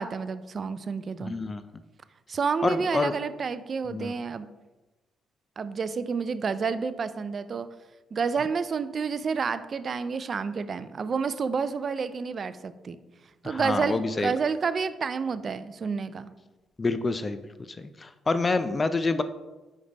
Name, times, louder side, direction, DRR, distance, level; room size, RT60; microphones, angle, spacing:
voice 1, 0.0-1.3 2.3-4.5 5.6-7.7 8.1-13.0 13.4-16.3, right 5 dB, 45° right, 13 dB, 0.4 m, -29 dB
voice 2, 1.2-1.6 2.6-3.1 3.9-4.1 13.4-14.3 16.8-17.5 17.8-19.2, left 3 dB, 30° left, 11 dB, 0.3 m, -27 dB
5.3 x 5.1 x 4.0 m, 1.1 s
cardioid pair, 90°, 0 cm